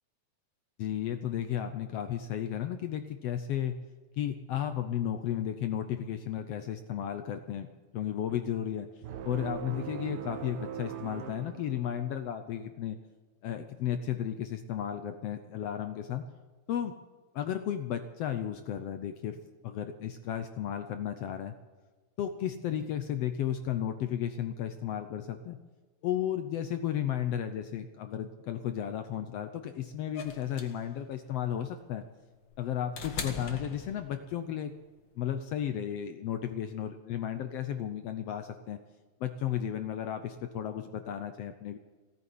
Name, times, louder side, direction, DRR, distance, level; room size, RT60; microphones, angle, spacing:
voice 1, 0.8-3.8 4.1-7.7 7.9-8.9 9.2-13.0 13.4-16.2 16.7-16.9 17.3-21.5 22.2-25.6 26.0-32.0 32.6-34.7 35.2-38.8 39.2-41.8, left 10 dB, 70° left, 8 dB, 1.6 m, -34 dB
sound 1, 9.0-12.4, right 9 dB, 65° right, 1.5 m, -41 dB
sound 2, 30.1-34.4 35.7-35.8, left 5 dB, 45° left, 1.8 m, -41 dB
17.0 x 9.7 x 7.8 m, 1.3 s
omnidirectional pair, 3.5 m